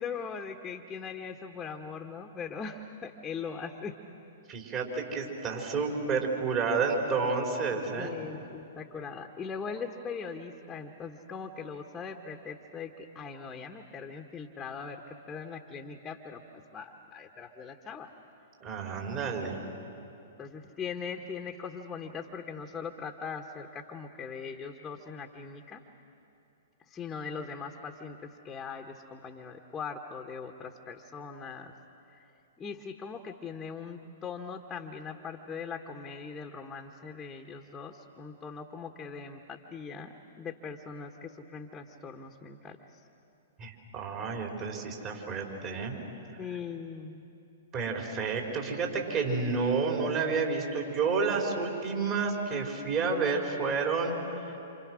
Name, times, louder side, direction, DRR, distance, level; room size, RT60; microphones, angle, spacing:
voice 1, 0.0-4.0 8.0-18.1 20.4-25.8 26.9-31.7 32.2-32.3 32.6-43.0 46.4-47.3, left 5 dB, 15° left, 3 dB, 1.4 m, -40 dB
voice 2, 4.5-8.1 18.6-19.6 43.6-45.9 47.7-54.4, right 4 dB, 35° right, 0 dB, 4.8 m, -30 dB
28.5 x 27.5 x 6.4 m, 2.8 s
hypercardioid pair, 115°, 0 cm